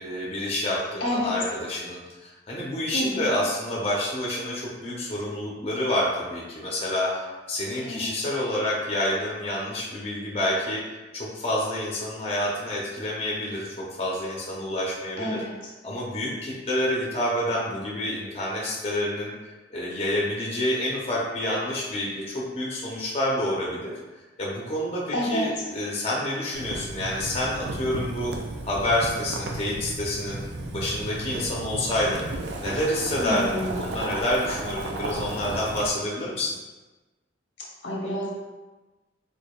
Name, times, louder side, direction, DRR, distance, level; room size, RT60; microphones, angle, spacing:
voice 1, 0.0-10.8 11.1-15.4 15.8-19.3 19.7-23.9 24.4-28.3 28.7-30.4 30.7-32.2 32.6-36.5, left 1 dB, 35° left, -5 dB, 0.6 m, -28 dB
voice 2, 1.0-1.3 2.9-3.3 7.8-8.1 15.2-15.5 25.1-25.5 33.2-33.7 37.8-38.3, left 1 dB, 85° left, -3 dB, 0.9 m, -28 dB
Boiling, 26.5-35.9, right 2 dB, 65° right, 0.4 m, -34 dB
4.7 x 2.5 x 2.3 m, 1.2 s
head